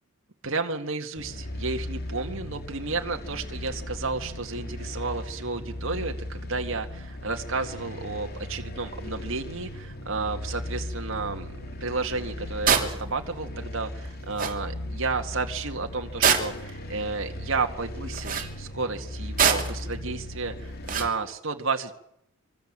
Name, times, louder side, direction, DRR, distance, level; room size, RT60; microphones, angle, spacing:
voice 1, 0.4-21.9, right 4 dB, 60° right, 5 dB, 1.9 m, -32 dB
sound 1, 1.2-21.1, left 1 dB, 45° left, 3.2 m, -37 dB
sound 2, 12.7-12.9 14.1-14.2 14.4-14.6 16.2-16.7 18.1-18.5 19.4-19.8 20.9-21.1, right 7 dB, 40° right, 3.2 m, -23 dB
26.5 x 23.0 x 7.6 m, 0.76 s
head